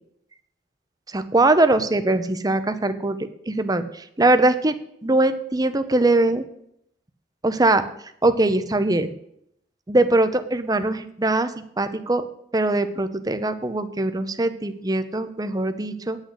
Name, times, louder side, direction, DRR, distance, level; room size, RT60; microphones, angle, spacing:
voice 1, 1.1-3.2 3.5-4.7 5.0-6.4 7.4-7.8 8.2-9.1 9.9-11.5 11.8-12.2 12.5-16.2, right 2 dB, 20° right, 10 dB, 0.8 m, -21 dB
9.8 x 6.5 x 7.9 m, 0.71 s
head